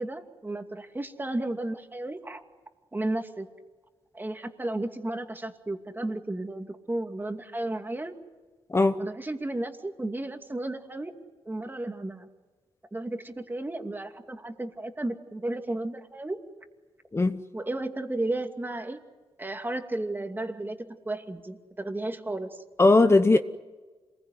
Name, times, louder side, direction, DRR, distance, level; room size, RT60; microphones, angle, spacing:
voice 1, 0.0-2.4 2.9-3.5 4.1-8.1 9.0-11.1 11.5-12.3 12.9-16.4 17.5-19.0 19.4-22.6, right 2 dB, 20° right, 2.5 m, -33 dB
voice 2, 22.8-23.4, left 2 dB, 25° left, 0.9 m, -19 dB
27.0 x 21.0 x 9.6 m
cardioid pair, 85°, 10 cm